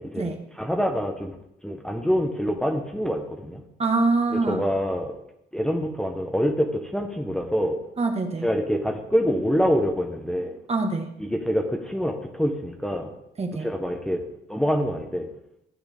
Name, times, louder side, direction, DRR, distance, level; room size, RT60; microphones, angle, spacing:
voice 1, 0.0-1.4 1.6-3.6 4.5-5.1 5.5-7.8 8.4-10.5 11.2-13.1 13.6-14.2 14.5-15.3, equal, 5° left, 2 dB, 1.2 m, -25 dB
voice 2, 3.8-4.6 8.0-8.5 10.7-11.1 13.4-13.7, right 3 dB, 30° right, 5 dB, 1.6 m, -24 dB
15.5 x 8.0 x 3.6 m, 0.81 s
cardioid pair, 90°, 20 cm